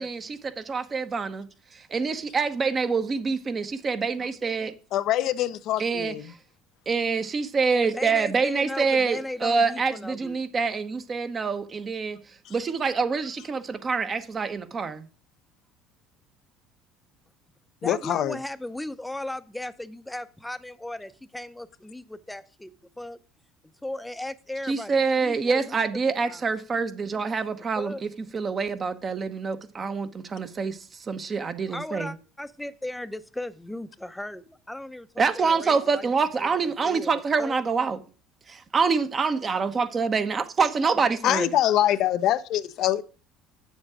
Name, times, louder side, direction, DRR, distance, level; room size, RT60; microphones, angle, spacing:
voice 1, 0.0-1.5 1.7-4.7 5.8-6.1 6.9-12.2 12.5-15.1 24.7-32.1 35.2-38.0 38.5-41.5, right 5 dB, 35° right, 1.0 m, -26 dB
voice 2, 4.9-6.3 17.8-18.4 41.2-43.0, left 12 dB, 60° left, 0.5 m, -24 dB
voice 3, 7.7-10.4 17.8-23.2 23.8-24.9 25.2-25.8 26.3-26.4 27.8-28.0 31.6-36.0 36.8-37.6, left 1 dB, 5° left, 0.7 m, -36 dB
8.7 x 7.2 x 4.9 m
hypercardioid pair, 75°, 0 cm